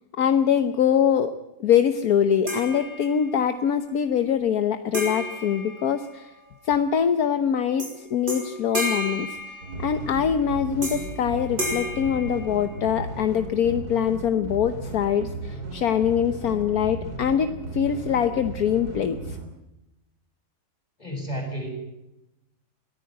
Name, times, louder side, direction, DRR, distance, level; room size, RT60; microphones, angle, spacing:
voice 1, 0.2-1.3 1.6-6.3 6.6-19.4, left 8 dB, 70° left, 9 dB, 1.5 m, -23 dB
sound 1, 2.5-3.5 4.9-6.5 7.8-8.0 8.3-10.1 10.8-11.2 11.6-13.0, equal, 30° right, 6.8 m, -32 dB
sound 2, 9.6-19.5, right 2 dB, 75° right, 3.8 m, -35 dB
voice 2, 21.0-21.7, equal, 25° left, 2 dB, 7.6 m, -31 dB
22.5 x 14.5 x 9.2 m, 0.92 s
omnidirectional pair, 1.7 m